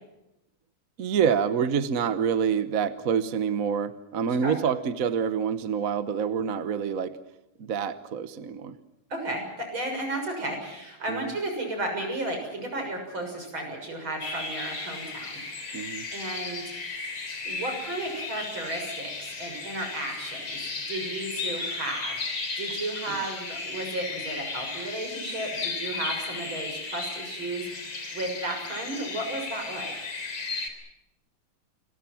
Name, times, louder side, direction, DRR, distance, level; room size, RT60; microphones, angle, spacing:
voice 1, 1.0-7.1 7.6-8.7 11.1-11.3 15.7-16.1, right 7 dB, 50° right, 11 dB, 1.2 m, -27 dB
voice 2, 9.1-16.9 17.4-29.9, right 1 dB, 70° right, 4 dB, 7.6 m, -34 dB
sound 1, 14.2-30.7, left 4 dB, 85° left, 4.5 m, -35 dB
29.0 x 21.5 x 6.0 m, 0.90 s
omnidirectional pair, 2.2 m